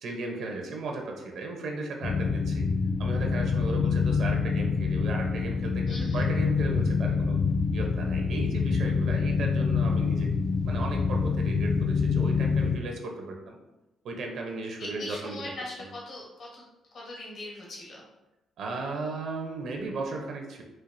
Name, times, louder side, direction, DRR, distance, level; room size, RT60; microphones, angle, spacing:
voice 1, 0.0-2.7 3.0-7.4 7.7-10.3 10.6-13.6 14.0-15.4 15.8-15.9 18.6-20.6, right 3 dB, 70° right, 2 dB, 0.7 m, -36 dB
sound 1, 2.0-12.8, left 5 dB, 35° left, 0.5 m, -26 dB
voice 2, 5.9-6.3 14.8-16.6 16.9-18.0, left 1 dB, 60° left, -4 dB, 1.2 m, -40 dB
4.4 x 2.5 x 2.6 m, 0.99 s
cardioid pair, 90°, 0 cm